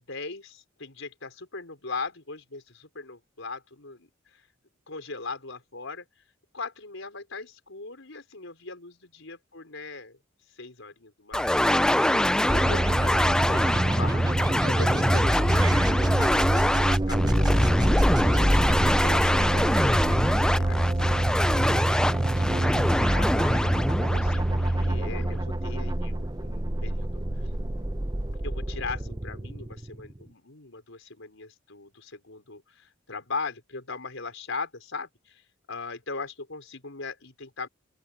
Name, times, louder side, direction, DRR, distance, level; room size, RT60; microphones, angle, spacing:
voice 1, 0.0-4.5 4.9-6.2 6.5-12.1 12.5-23.6 24.0-27.5 28.4-37.7, left 4 dB, 75° left, 4.8 m, -40 dB
sound 1, 11.3-25.2, left 1 dB, 5° left, 0.4 m, -24 dB
sound 2, 12.5-30.2, right 1 dB, 20° right, 0.8 m, -26 dB
sound 3, 15.5-16.0, right 7 dB, 85° right, 4.9 m, -37 dB
open air
head